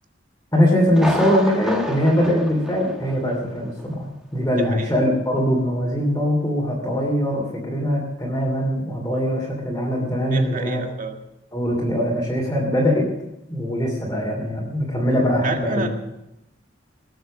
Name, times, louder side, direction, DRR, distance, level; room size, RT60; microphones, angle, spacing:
voice 1, 0.5-10.8 11.5-13.1 13.5-15.9, equal, 15° left, -3 dB, 2.7 m, -22 dB
Thunder, 0.9-3.5 3.8-3.9 4.4-4.5, equal, 5° right, 1.6 m, -30 dB
voice 2, 4.6-4.9 10.3-11.2 15.4-15.9, right 3 dB, 45° right, 4 dB, 1.7 m, -29 dB
19.0 x 7.8 x 7.3 m, 0.89 s
head